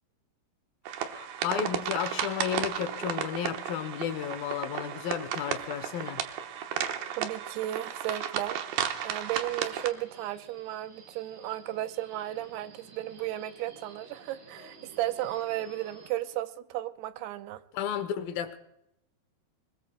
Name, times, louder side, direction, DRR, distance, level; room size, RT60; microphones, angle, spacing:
sound 1, 0.9-9.9, right 9 dB, 70° right, 2.9 m, -34 dB
voice 1, 1.0-6.2 17.7-18.6, left 9 dB, 75° left, 2.6 m, -33 dB
voice 2, 7.2-8.6 9.0-17.6, right 14 dB, 90° right, 2.7 m, -34 dB
Subway metro underground, 9.2-16.1, right 3 dB, 55° right, 6.5 m, -53 dB
25.5 x 22.0 x 2.2 m
omnidirectional pair, 4.6 m